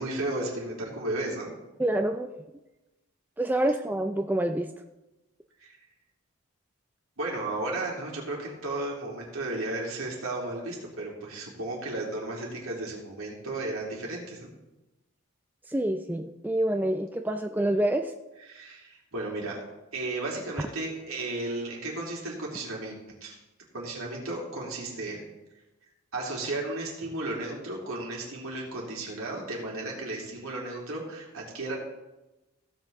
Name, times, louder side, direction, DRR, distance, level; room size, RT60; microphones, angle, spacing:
voice 1, 0.0-1.5 5.6-5.8 7.2-14.5 18.5-19.6 19.9-23.4 23.7-25.2 26.1-31.8, right 2 dB, 70° right, -3 dB, 3.2 m, -34 dB
voice 2, 1.8-2.3 3.4-4.7 15.7-18.1, right 1 dB, 10° right, 5 dB, 0.3 m, -27 dB
16.0 x 8.0 x 3.5 m, 1.0 s
head